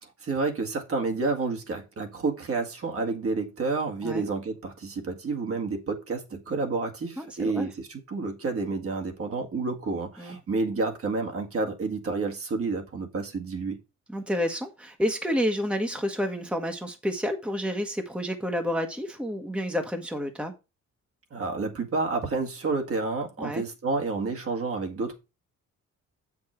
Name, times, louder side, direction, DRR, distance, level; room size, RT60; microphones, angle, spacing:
voice 1, 0.0-13.8 21.3-25.1, right 3 dB, 50° right, 1.9 m, -30 dB
voice 2, 7.2-7.7 10.2-10.4 14.1-20.5 23.4-23.6, equal, 5° right, 1.3 m, -29 dB
7.3 x 6.0 x 4.4 m
cardioid pair, 90°, 30 cm